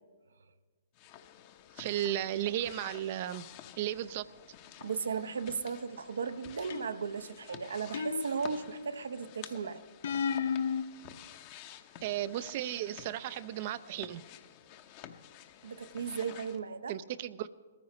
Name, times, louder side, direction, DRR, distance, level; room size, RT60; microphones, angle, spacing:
sound 1, 0.9-16.6, left 10 dB, 40° left, 0.9 m, -51 dB
voice 1, 1.8-3.5 3.8-4.3 12.0-14.2 16.9-17.5, right 12 dB, 45° right, 0.5 m, -34 dB
voice 2, 4.8-9.8 15.6-17.0, right 5 dB, 75° right, 0.8 m, -36 dB
sound 2, 6.7-7.2 7.9-8.8 10.0-10.8, left 6 dB, 60° left, 0.6 m, -33 dB
21.0 x 14.5 x 3.1 m
hypercardioid pair, 130°, 0 cm